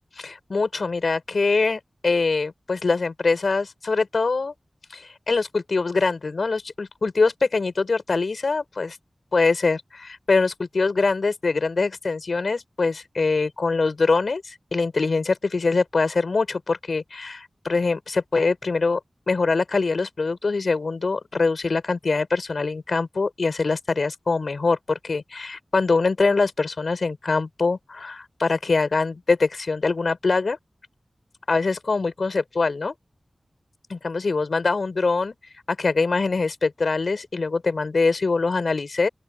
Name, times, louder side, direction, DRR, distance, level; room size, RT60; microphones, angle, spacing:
voice 1, 0.2-4.5 4.9-9.0 9.3-19.0 19.3-30.6 31.5-32.9 33.9-35.3 35.7-39.1, left 3 dB, 75° left, 5.3 m, -23 dB
open air
wide cardioid pair, 85°, 0 cm